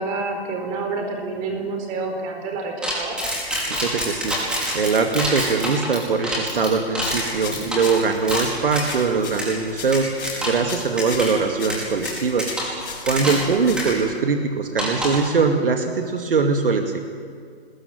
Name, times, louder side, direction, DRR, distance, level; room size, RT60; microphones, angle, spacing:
voice 1, 0.0-3.2 13.2-13.5, right 3 dB, 25° right, 4 dB, 4.5 m, -28 dB
sound 1, 2.8-9.0 9.4-9.5 9.9-10.7 11.0-11.3 11.7-13.5 13.8-13.9 14.8-15.3, equal, 5° right, 5.1 m, -26 dB
voice 2, 3.8-4.4 4.7-12.5 13.0-17.0, right 4 dB, 60° right, 5 dB, 2.4 m, -22 dB
sound 2, 7.0-14.2, left 5 dB, 50° left, 6.9 m, -37 dB
27.0 x 21.0 x 8.0 m, 2.2 s
figure-of-eight pair, 135°, 31 cm